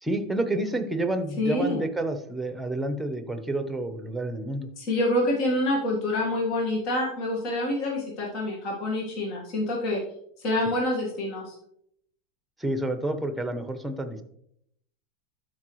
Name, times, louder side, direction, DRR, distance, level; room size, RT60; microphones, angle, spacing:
voice 1, 0.0-4.7 12.6-14.2, right 1 dB, 5° right, 9 dB, 1.0 m, -29 dB
voice 2, 1.4-1.8 4.8-10.0 10.4-11.5, left 1 dB, 55° left, -2 dB, 1.8 m, -27 dB
12.0 x 4.9 x 3.2 m, 0.72 s
supercardioid pair, 115°, 0 cm